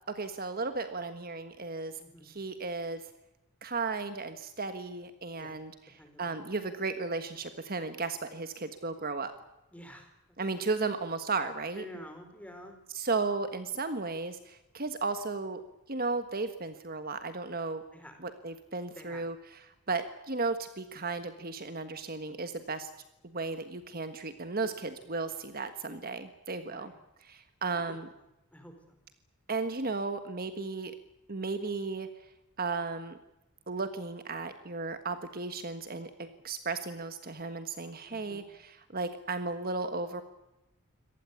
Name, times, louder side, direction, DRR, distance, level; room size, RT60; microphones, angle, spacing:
voice 1, 0.1-3.0 3.6-9.3 10.4-11.8 12.9-15.6 15.9-17.8 18.2-22.9 23.2-26.9 27.2-28.1 29.5-30.9 31.3-32.1 32.6-33.2 33.7-40.2, right 3 dB, 40° right, 9 dB, 1.5 m, -35 dB
voice 2, 6.0-6.4 9.7-10.1 11.8-12.7 17.9-18.2 19.0-19.3 26.7-27.0 27.9-28.0 28.5-28.7 38.1-38.4, equal, 5° left, 6 dB, 4.5 m, -48 dB
25.0 x 18.5 x 8.4 m, 0.90 s
head